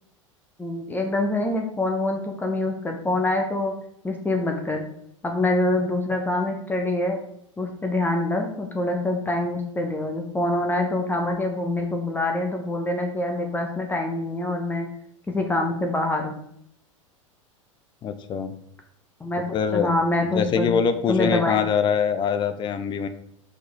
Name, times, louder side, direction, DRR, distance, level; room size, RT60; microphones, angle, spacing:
voice 1, 0.6-3.7 4.0-4.8 5.2-7.2 7.6-14.9 15.3-16.4 19.2-19.4 19.7-20.7 21.1-21.6, left 2 dB, 10° left, 3 dB, 1.0 m, -25 dB
voice 2, 18.0-18.5 19.5-19.9 20.2-23.1, left 6 dB, 25° left, 10 dB, 0.6 m, -23 dB
5.7 x 5.1 x 3.5 m, 0.71 s
figure-of-eight pair, 85°, 17 cm